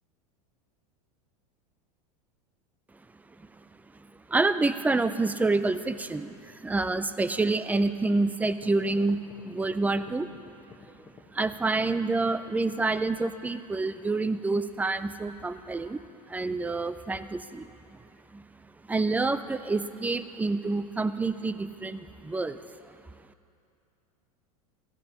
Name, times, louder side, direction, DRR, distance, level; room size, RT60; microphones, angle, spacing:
voice 1, 4.3-10.3 11.0-16.0 16.3-18.0 18.3-18.4 18.9-22.6, right 3 dB, 10° right, 13 dB, 0.4 m, -28 dB
sound 1, 8.5-13.1, left 5 dB, 20° left, 1.3 m, -51 dB
16.5 x 13.5 x 2.9 m, 2.5 s
hypercardioid pair, 105°, 20 cm